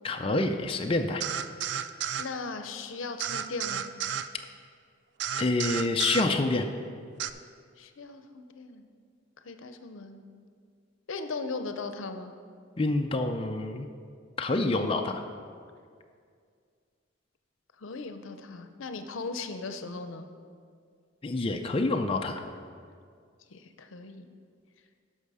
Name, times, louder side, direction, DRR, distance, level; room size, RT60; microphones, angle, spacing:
voice 1, 0.0-1.2 5.4-6.6 12.8-13.9 14.4-15.2 21.2-22.4, left 2 dB, 25° left, 4 dB, 0.4 m, -27 dB
sound 1, 1.2-2.3 3.2-4.3 5.2-6.3 7.2-7.3, right 8 dB, 60° right, 0.3 m, -32 dB
voice 2, 2.2-3.9 7.8-8.8 9.4-10.3 11.1-12.3 17.8-20.3 23.5-24.3, left 3 dB, 80° left, 8 dB, 0.6 m, -38 dB
12.0 x 5.5 x 4.9 m, 2.2 s
head